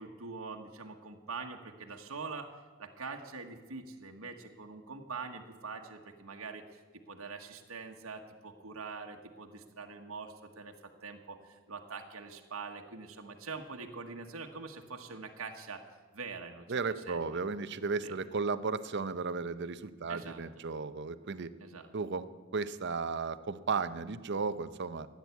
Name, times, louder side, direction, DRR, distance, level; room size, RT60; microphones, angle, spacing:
voice 1, 0.0-2.5 2.8-6.8 7.1-10.7 11.0-15.8 16.1-16.7 17.1-17.4 18.0-18.2 20.1-20.4 21.6-21.9, right 4 dB, 85° right, 3 dB, 1.3 m, -44 dB
voice 2, 16.7-21.5 21.9-22.3 22.5-25.1, right 4 dB, 55° right, 13 dB, 0.7 m, -34 dB
15.0 x 9.5 x 8.2 m, 1.4 s
head